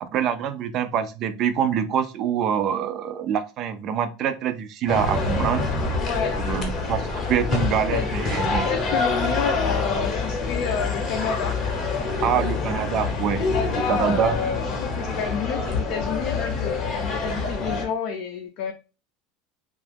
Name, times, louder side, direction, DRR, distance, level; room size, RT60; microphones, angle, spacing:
voice 1, 0.0-5.7 6.4-8.6 12.2-13.4 13.9-14.4, right 8 dB, 35° right, 0.4 m, -25 dB
sound 1, 4.9-17.8, left 3 dB, 30° left, 0.8 m, -26 dB
voice 2, 6.0-6.5 7.9-8.1 8.6-11.6 12.3-18.7, left 7 dB, 50° left, 0.4 m, -30 dB
2.8 x 2.4 x 3.3 m
supercardioid pair, 160°, 0 cm